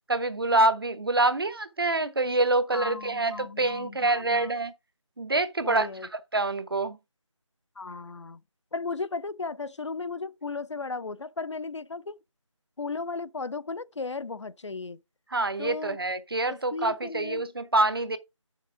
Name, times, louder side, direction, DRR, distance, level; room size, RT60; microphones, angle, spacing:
voice 1, 0.1-4.7 5.2-5.9 6.3-7.0 15.3-18.2, right 2 dB, 45° right, 0.8 m, -26 dB
voice 2, 2.7-4.5 5.6-6.1 7.8-8.4 8.7-12.2 12.8-15.0 15.6-16.0 16.5-17.5, left 4 dB, 60° left, 0.5 m, -35 dB
6.5 x 6.4 x 4.8 m
figure-of-eight pair, 170°, 17 cm